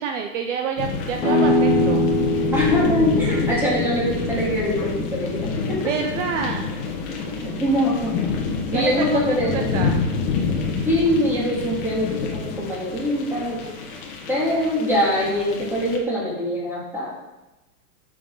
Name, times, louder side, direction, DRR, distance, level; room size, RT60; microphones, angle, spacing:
voice 1, 0.0-2.0 5.8-6.7 8.7-9.9 14.5-14.6, right 6 dB, 50° right, 4 dB, 0.8 m, -28 dB
sound 1, 0.8-16.0, left 5 dB, 35° left, 1.5 m, -28 dB
sound 2, 1.2-6.8, left 1 dB, 10° left, 1.7 m, -24 dB
voice 2, 2.5-5.8 7.2-8.3 8.7-9.7 10.8-13.6 14.3-17.1, left 1 dB, 5° right, -7 dB, 2.5 m, -23 dB
12.5 x 6.5 x 3.9 m, 1.0 s
supercardioid pair, 170°, 46 cm